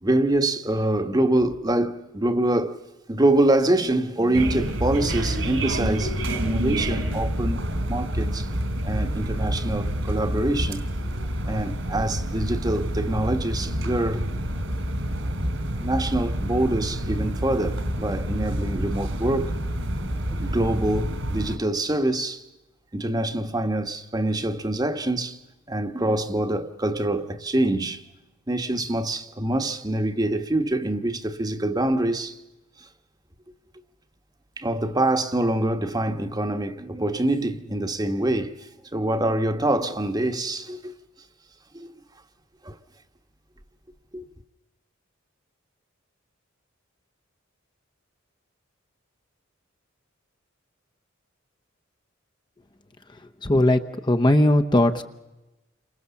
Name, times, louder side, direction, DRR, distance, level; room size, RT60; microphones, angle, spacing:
voice 1, 0.0-2.8 3.1-6.2 6.4-7.6 7.9-8.5 8.8-10.9 11.4-14.2 15.8-19.5 20.3-22.4 22.9-25.4 25.7-28.0 28.5-32.4 34.6-40.9 41.7-41.9 42.6-42.7 44.1-44.2, right 1 dB, 20° right, 1.3 m, -25 dB
sound 1, 4.3-21.6, right 1 dB, 70° right, 3.7 m, -28 dB
voice 2, 53.4-55.0, left 1 dB, 20° left, 0.9 m, -19 dB
29.5 x 25.5 x 7.1 m
head